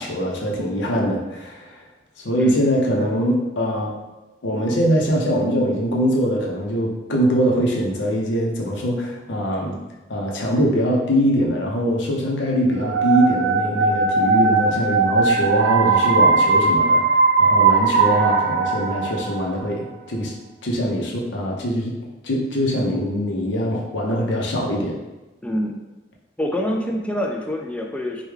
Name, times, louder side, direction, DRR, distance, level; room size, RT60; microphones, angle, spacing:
voice 1, 0.0-1.7 2.2-3.9 4.4-9.8 10.1-20.3 20.6-22.0 22.2-25.0, equal, 90° left, -1 dB, 0.7 m, -22 dB
sound 1, 12.8-19.6, right 4 dB, 65° right, 0.4 m, -18 dB
voice 2, 25.4-25.8 26.4-28.3, equal, 5° left, 1 dB, 0.3 m, -26 dB
3.4 x 2.2 x 3.2 m, 1.1 s
head